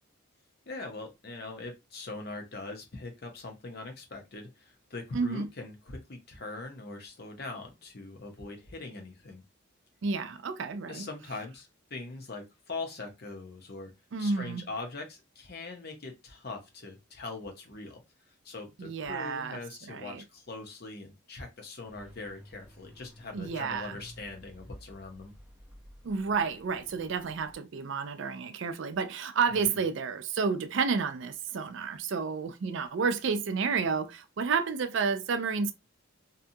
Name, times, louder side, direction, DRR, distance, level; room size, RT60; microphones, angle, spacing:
voice 1, 0.7-9.4 10.9-13.9 14.2-18.0 18.4-25.3 29.7-29.8, left 3 dB, 50° left, 0.7 m, -42 dB
voice 2, 5.1-5.5 10.0-11.1 14.1-14.6 18.8-19.6 19.9-20.2 23.3-24.0 26.0-35.7, right 5 dB, 60° right, 0.4 m, -30 dB
sound 1, 21.8-27.6, equal, 5° right, 0.5 m, -53 dB
2.7 x 2.3 x 2.7 m
head